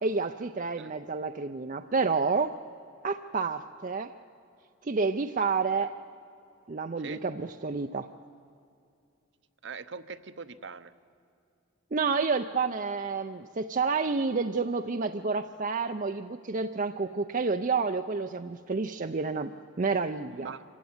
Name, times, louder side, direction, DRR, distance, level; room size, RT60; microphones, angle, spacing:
voice 1, 0.0-2.6 3.0-4.1 4.8-5.9 6.7-8.1 11.9-20.5, right 4 dB, 40° right, 7 dB, 0.5 m, -29 dB
voice 2, 9.6-10.9 20.3-20.6, right 5 dB, 60° right, 11 dB, 0.9 m, -42 dB
26.0 x 16.0 x 9.5 m, 2.5 s
head